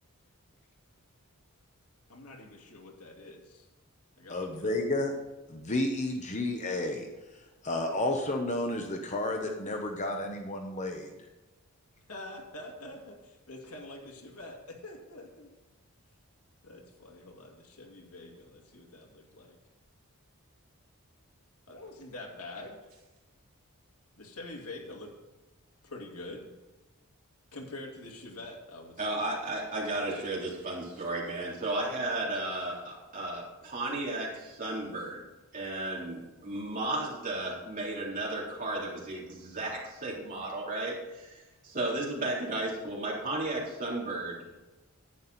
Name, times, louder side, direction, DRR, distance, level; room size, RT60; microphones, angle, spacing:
voice 1, 2.1-3.7 4.2-4.8 12.1-15.5 16.6-19.6 21.7-22.8 24.2-25.1 25.8-26.5 27.5-29.2, left 2 dB, 90° left, 1 dB, 2.4 m, -45 dB
voice 2, 4.3-5.1 5.5-7.1 7.6-11.1, left 2 dB, 35° left, 3 dB, 1.0 m, -31 dB
voice 3, 29.0-35.2 35.5-44.6, right 2 dB, 35° right, -4 dB, 3.6 m, -34 dB
11.0 x 9.6 x 4.2 m, 1.1 s
head